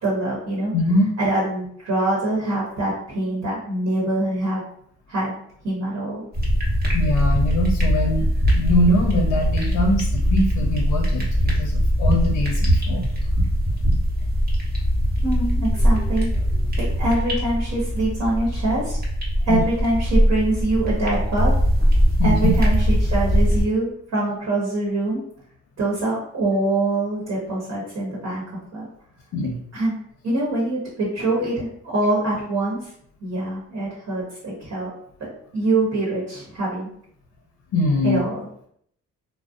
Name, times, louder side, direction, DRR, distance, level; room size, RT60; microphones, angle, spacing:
voice 1, 0.0-0.7 1.2-4.6 5.1-5.3 5.6-6.2 15.2-16.3 16.8-19.0 19.4-21.6 22.2-25.2 25.8-28.4 28.7-28.9 29.7-29.9 30.2-31.7 31.9-32.9 33.2-34.9 35.2-35.3 35.5-36.9 38.0-38.4, right 2 dB, 55° right, -5 dB, 1.0 m, -24 dB
voice 2, 0.7-1.1 6.9-8.3 8.5-11.3 11.6-13.1 19.5-19.6 22.2-22.5 29.3-29.6 37.7-38.2, left 1 dB, 70° left, 1 dB, 0.5 m, -22 dB
sound 1, 6.3-23.6, equal, 30° right, 0.9 m, -21 dB
2.5 x 2.0 x 2.4 m, 0.67 s
cardioid pair, 90°, 30 cm